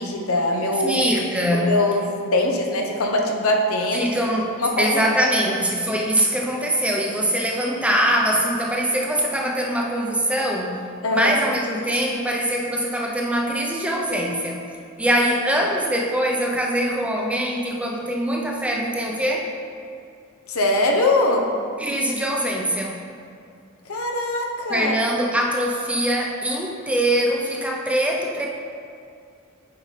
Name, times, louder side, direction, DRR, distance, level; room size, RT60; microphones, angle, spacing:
voice 1, 0.0-1.0 1.5-4.1 4.6-5.0 5.3-5.5 11.0-11.4 20.5-21.5 23.9-24.9, left 2 dB, 80° left, 1 dB, 0.9 m, -22 dB
voice 2, 0.8-1.8 3.9-4.5 4.8-10.8 11.1-14.6 15.0-19.5 21.8-23.0 24.7-28.5, equal, 5° right, -1 dB, 0.7 m, -23 dB
9.1 x 5.3 x 3.3 m, 2.4 s
head